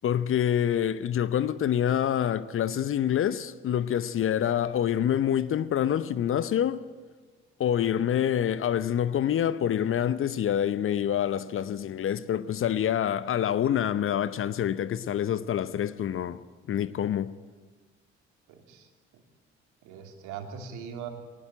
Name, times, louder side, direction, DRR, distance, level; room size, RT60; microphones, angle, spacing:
voice 1, 0.0-6.9 7.6-16.4 16.7-17.3, left 10 dB, 40° left, 0.8 m, -26 dB
voice 2, 18.5-19.2 19.8-21.1, right 7 dB, 60° right, 2.9 m, -41 dB
23.5 x 19.0 x 9.1 m
figure-of-eight pair, 50°, 33 cm